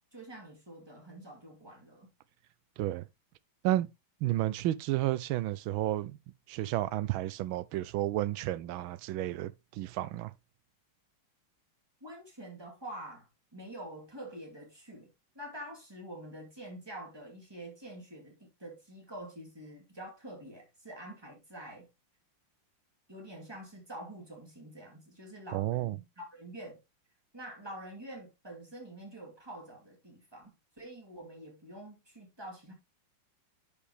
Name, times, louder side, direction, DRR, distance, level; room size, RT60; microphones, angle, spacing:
voice 1, 0.1-2.1 12.0-15.1 15.3-21.9 23.1-26.8 27.3-32.7, right 1 dB, 10° right, 2.6 m, -46 dB
voice 2, 4.2-6.2 6.5-10.3 25.5-26.0, right 15 dB, 90° right, 1.4 m, -31 dB
10.0 x 5.3 x 3.2 m
omnidirectional pair, 2.2 m